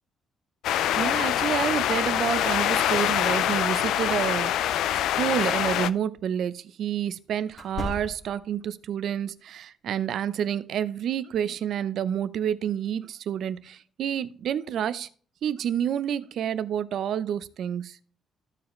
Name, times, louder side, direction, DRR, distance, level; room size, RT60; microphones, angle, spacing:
sound 1, 0.6-5.9, left 11 dB, 85° left, 0.3 m, -25 dB
voice 1, 1.0-4.8 5.2-15.1 15.4-18.0, right 9 dB, 60° right, 0.5 m, -29 dB
sound 2, 5.3-5.5 7.5-8.5, left 1 dB, 25° left, 1.8 m, -36 dB
14.0 x 4.8 x 3.1 m
cardioid pair, 135°, 0 cm